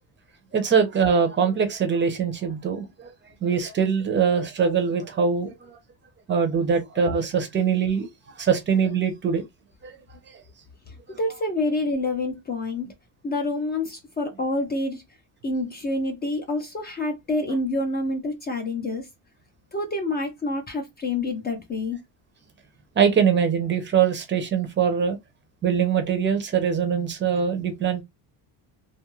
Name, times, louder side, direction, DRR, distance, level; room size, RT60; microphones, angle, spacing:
voice 1, 0.5-3.1 3.4-5.8 6.3-8.1 8.4-9.4 9.8-10.4 23.0-25.2 25.6-28.0, right 6 dB, 30° right, 0.5 m, -23 dB
voice 2, 10.9-12.9 13.2-15.0 15.4-19.1 19.7-22.0, left 2 dB, 25° left, 0.4 m, -27 dB
2.6 x 2.3 x 3.0 m
cardioid pair, 170°, 40 cm